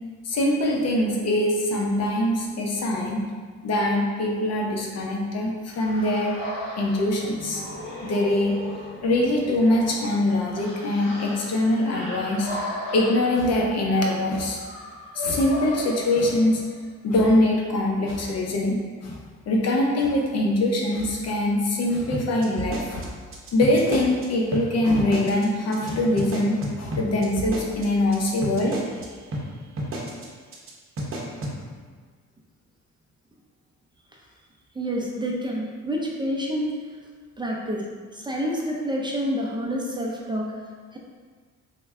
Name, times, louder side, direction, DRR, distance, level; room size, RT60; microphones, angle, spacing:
voice 1, 0.2-3.2 3.6-6.3 6.8-7.6 8.0-8.6 9.0-12.5 12.9-14.6 15.1-16.6 17.0-19.2 19.5-23.1 23.5-28.8, left 1 dB, 60° left, -1 dB, 0.6 m, -23 dB
sound 1, 5.7-16.8, left 1 dB, 40° left, 1.5 m, -36 dB
sound 2, 22.1-24.2 24.5-24.6 25.0-25.4 25.7-25.9 26.2-29.0 29.3-29.4 29.8-30.2 30.5-30.7 31.0-31.5, right 1 dB, 45° right, 0.7 m, -31 dB
voice 2, 34.7-36.8 37.4-37.9 38.1-40.5 40.9-41.0, equal, 15° right, -2 dB, 0.4 m, -28 dB
3.2 x 2.1 x 3.5 m, 1.5 s
cardioid pair, 90°, 30 cm